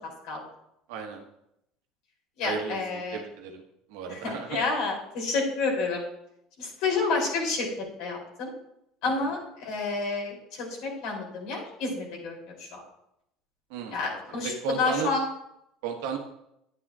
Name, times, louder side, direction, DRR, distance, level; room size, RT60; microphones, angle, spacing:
voice 1, 0.9-1.2 2.4-3.6 3.9-4.6 13.7-14.0 14.4-15.1 15.8-16.2, right 6 dB, 80° right, 3 dB, 1.4 m, -34 dB
voice 2, 2.4-3.2 4.1-6.0 6.6-8.5 9.0-12.8 13.9-15.2, left 3 dB, 70° left, -1 dB, 3.1 m, -30 dB
9.7 x 9.6 x 2.5 m, 0.79 s
supercardioid pair, 90°, 0 cm